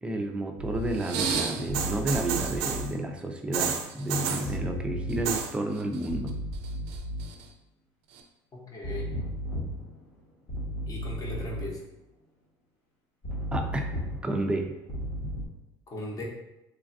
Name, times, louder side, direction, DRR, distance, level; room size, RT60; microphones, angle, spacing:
voice 1, 0.0-6.4 13.5-13.9 14.2-14.7, right 1 dB, 10° right, 3 dB, 0.4 m, -31 dB
sound 1, 0.6-1.0 1.7-3.0 4.4-5.4 6.1-7.4 8.8-10.1 10.5-11.8 13.2-14.5 14.9-15.5, equal, 60° left, 1.0 m, -34 dB
sound 2, 0.9-2.9 3.5-4.5 5.1-5.5 5.8-6.3 6.6-7.4 8.2-8.3, right 7 dB, 75° right, 0.4 m, -31 dB
voice 2, 8.5-9.1 10.9-11.8 15.9-16.2, left 1 dB, 35° left, -1 dB, 0.8 m, -38 dB
3.2 x 2.3 x 2.5 m, 0.92 s
supercardioid pair, 100°, 11 cm